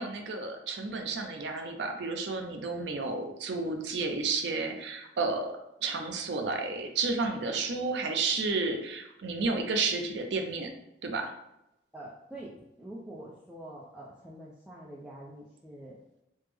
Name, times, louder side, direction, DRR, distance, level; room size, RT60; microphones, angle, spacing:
voice 1, 0.0-5.5 5.8-10.7 11.0-11.3, right 3 dB, 75° right, 4 dB, 0.5 m, -31 dB
voice 2, 11.9-16.0, right 1 dB, 5° right, -7 dB, 0.4 m, -45 dB
3.3 x 2.0 x 3.3 m, 0.87 s
head